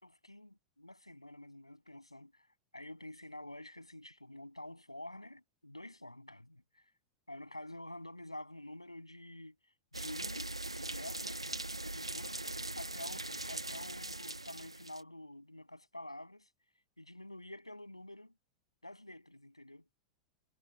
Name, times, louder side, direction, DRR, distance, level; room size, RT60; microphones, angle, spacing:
voice 1, 0.2-2.5 2.7-6.8 7.3-9.6 9.9-11.4 11.8-12.4 12.8-16.5 17.0-18.3 18.8-19.9, left 1 dB, 90° left, 7.8 m, -49 dB
sound 1, 9.9-15.0, right 2 dB, 90° right, 1.3 m, -41 dB
figure-of-eight pair, 90°, 3 cm